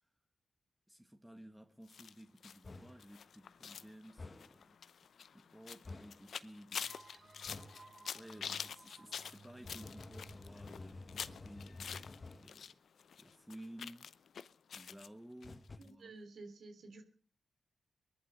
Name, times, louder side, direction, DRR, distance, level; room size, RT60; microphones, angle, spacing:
voice 1, 0.9-4.8 5.3-7.7 8.1-12.1 12.4-12.8 13.2-14.1 14.7-16.2, equal, 5° right, 1.6 m, -55 dB
sound 1, 1.9-12.7 13.0-15.1 15.4-15.5 15.8-15.9, left 7 dB, 75° left, 0.7 m, -47 dB
sound 2, 2.6-3.1 4.2-4.6 5.8-6.3 7.5-7.9 9.6-12.6 15.4-15.8, left 3 dB, 40° left, 1.3 m, -51 dB
sound 3, 6.7-12.2, right 3 dB, 45° right, 2.1 m, -61 dB
voice 2, 15.8-17.0, right 3 dB, 75° right, 3.2 m, -52 dB
21.0 x 11.5 x 5.5 m
supercardioid pair, 45°, 0 cm